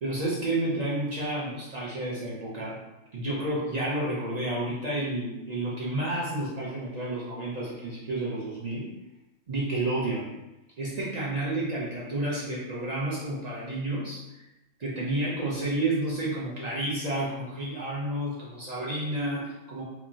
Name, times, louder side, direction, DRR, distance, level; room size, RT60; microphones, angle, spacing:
voice 1, 0.0-2.8 3.1-8.9 9.5-10.3 10.8-14.4 14.8-19.8, right 1 dB, 50° right, -6 dB, 0.5 m, -30 dB
3.0 x 2.3 x 2.5 m, 0.96 s
omnidirectional pair, 1.4 m